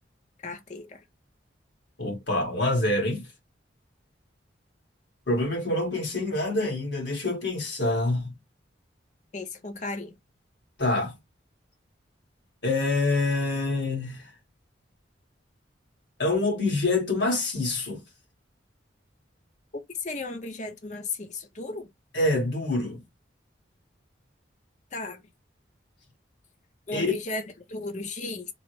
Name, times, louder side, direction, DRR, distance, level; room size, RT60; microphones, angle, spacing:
voice 1, 0.4-1.0 9.3-10.1 20.0-21.9 24.9-25.2 26.9-27.4 27.7-28.5, left 3 dB, 40° left, 0.6 m, -35 dB
voice 2, 2.0-3.3 5.3-8.3 10.8-11.1 12.6-14.3 16.2-18.0 22.1-23.0 26.9-27.2, left 2 dB, 65° left, 1.7 m, -26 dB
3.8 x 2.1 x 3.1 m
head